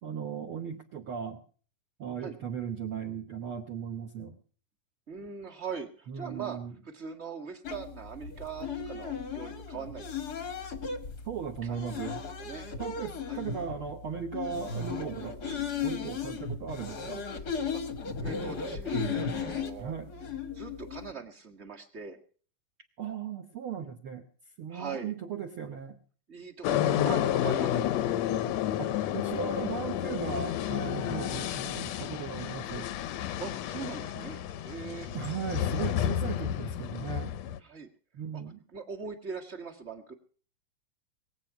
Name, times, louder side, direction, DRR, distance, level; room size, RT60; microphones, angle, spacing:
voice 1, 0.0-1.4 2.0-4.3 6.1-6.7 11.2-12.2 12.8-15.4 15.8-17.2 19.8-20.1 23.0-24.3 24.6-26.0 26.8-27.4 28.8-32.9 35.1-37.3 38.1-38.6, right 7 dB, 70° right, 5 dB, 1.2 m, -37 dB
voice 2, 5.1-6.6 6.8-10.1 11.6-11.9 12.4-12.7 13.3-13.4 17.7-17.8 18.2-19.9 20.5-22.2 24.7-25.1 26.3-28.0 33.4-34.4 34.6-35.1 37.6-37.9 38.3-38.4 38.7-40.1, right 5 dB, 30° right, 3 dB, 1.2 m, -41 dB
sound 1, 7.6-21.1, left 5 dB, 60° left, 1.0 m, -36 dB
sound 2, 26.6-37.6, left 11 dB, 75° left, 1.6 m, -31 dB
23.0 x 8.2 x 5.9 m, 0.43 s
omnidirectional pair, 4.0 m